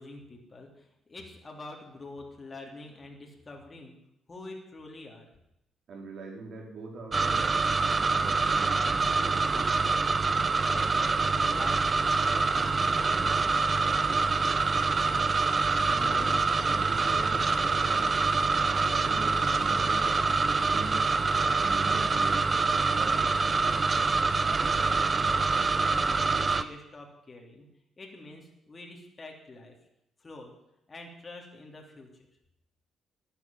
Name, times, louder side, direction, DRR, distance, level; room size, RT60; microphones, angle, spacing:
voice 1, 0.0-3.9 4.3-5.3 10.7-14.5 24.4-27.7 28.0-29.7 30.2-30.5 30.9-32.1, left 2 dB, 30° left, 0 dB, 3.3 m, -46 dB
voice 2, 5.9-7.5 7.9-9.8 15.9-16.4 16.7-18.2 18.9-20.1 20.5-21.0 21.6-22.5 22.9-23.2, right 3 dB, 60° right, 1 dB, 4.7 m, -42 dB
sound 1, 7.1-26.6, right 4 dB, 30° right, 0.8 m, -25 dB
12.5 x 9.1 x 9.6 m, 0.84 s
cardioid pair, 90°, 0 cm